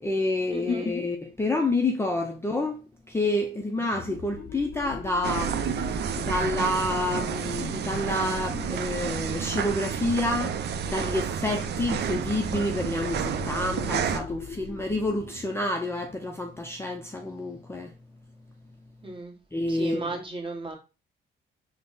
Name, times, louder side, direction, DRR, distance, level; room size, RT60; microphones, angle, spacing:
voice 1, 0.0-17.9 19.5-20.1, left 2 dB, 10° left, 0.5 m, -28 dB
voice 2, 0.5-0.9 19.0-19.4 19.7-20.8, right 2 dB, 25° right, 1.3 m, -35 dB
sound 1, 3.8-9.1 12.1-17.4, left 6 dB, 60° left, 0.6 m, -42 dB
sound 2, 5.2-14.2, right 7 dB, 55° right, 0.5 m, -30 dB
3.6 x 2.1 x 3.8 m
cardioid pair, 90°, 20 cm